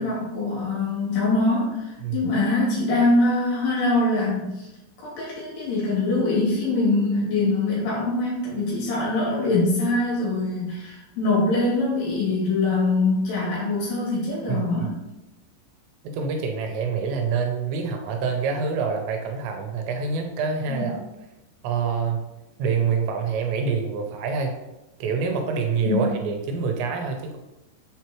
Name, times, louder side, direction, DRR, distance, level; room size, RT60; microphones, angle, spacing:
voice 1, 0.0-4.7 5.0-14.9 20.7-20.9 25.9-26.0, left 2 dB, 70° left, -7 dB, 4.5 m, -23 dB
voice 2, 14.5-14.9 16.0-21.0 21.6-22.2 22.6-24.5 25.0-27.4, right 5 dB, 80° right, 3 dB, 3.0 m, -26 dB
7.6 x 4.5 x 3.0 m, 0.97 s
omnidirectional pair, 5.1 m